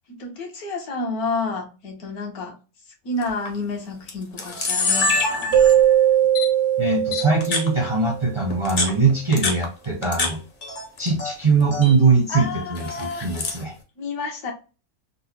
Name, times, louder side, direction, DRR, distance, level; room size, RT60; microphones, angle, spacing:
voice 1, 0.1-2.5 3.0-5.5 12.3-13.3 14.0-14.5, left 3 dB, 70° left, 1.4 m, -30 dB
Camera, 3.2-3.5 4.1-4.2 4.4-5.9 6.4-6.5 7.1-7.7 8.5-10.3 10.6-11.3 11.6-12.0 12.8-13.6, left 3 dB, 45° left, 0.7 m, -25 dB
Keyboard (musical), 5.5-8.3, right 11 dB, 90° right, 1.2 m, -19 dB
voice 2, 6.8-10.4 11.0-13.7, right 4 dB, 40° right, 0.4 m, -21 dB
4.0 x 2.1 x 2.7 m
omnidirectional pair, 1.6 m